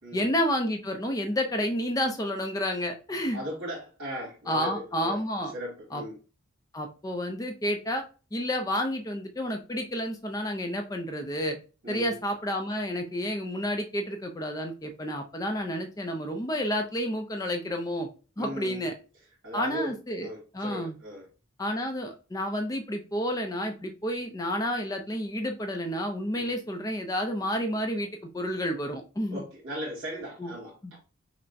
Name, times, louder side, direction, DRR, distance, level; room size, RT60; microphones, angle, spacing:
voice 1, 0.1-3.4 4.5-5.5 5.9-6.0 6.7-8.0 8.3-11.6 11.9-18.1 18.4-18.9 19.5-20.3 20.5-21.0 21.6-28.1 28.3-29.4 30.4-30.5 30.8-30.9, equal, 15° left, 0.4 m, -30 dB
voice 2, 3.3-5.2 5.5-6.2 11.8-12.1 18.4-18.9 19.4-21.2 26.4-26.5 29.3-31.0, equal, 80° right, 1.8 m, -37 dB
5.5 x 2.1 x 2.6 m
head